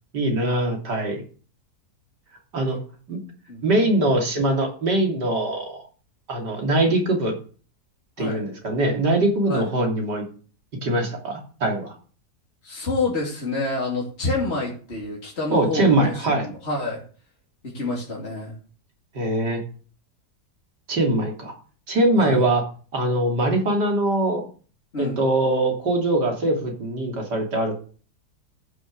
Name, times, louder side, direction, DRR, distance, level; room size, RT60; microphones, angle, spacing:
voice 1, 0.1-1.2 2.5-2.8 3.1-3.2 3.6-5.8 6.3-7.3 8.2-10.3 10.8-11.9 15.5-16.5 19.1-19.6 20.9-21.5 21.9-22.6 22.9-24.5 25.0-27.8, right 1 dB, 85° right, 2 dB, 3.5 m, -22 dB
voice 2, 12.6-17.0 17.7-18.5 22.2-22.4 24.9-25.2, left 2 dB, 40° left, -4 dB, 3.0 m, -28 dB
14.0 x 6.5 x 6.6 m, 0.41 s
omnidirectional pair, 1.8 m